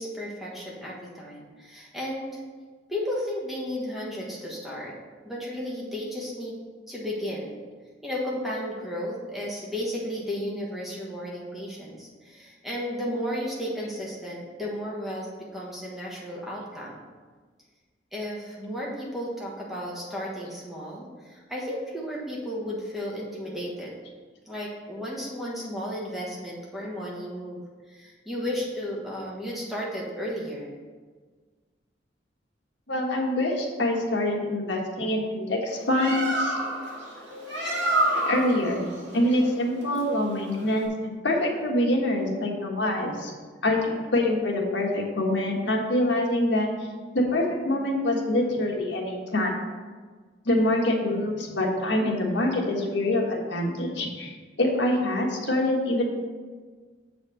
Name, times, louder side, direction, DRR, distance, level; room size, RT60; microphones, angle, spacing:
voice 1, 0.0-2.4 2.9-5.0 5.2-6.6 6.9-7.5 8.0-17.0 18.1-23.9 24.5-27.6 27.9-30.7, equal, ahead, -5 dB, 1.4 m, -33 dB
voice 2, 32.9-36.6 38.2-43.3 43.6-46.7 47.1-49.6 50.4-56.0, left 1 dB, 85° left, -1 dB, 1.5 m, -25 dB
Bird, 35.7-40.9, right 1 dB, 90° right, 2.2 m, -29 dB
7.4 x 4.2 x 6.3 m, 1.5 s
head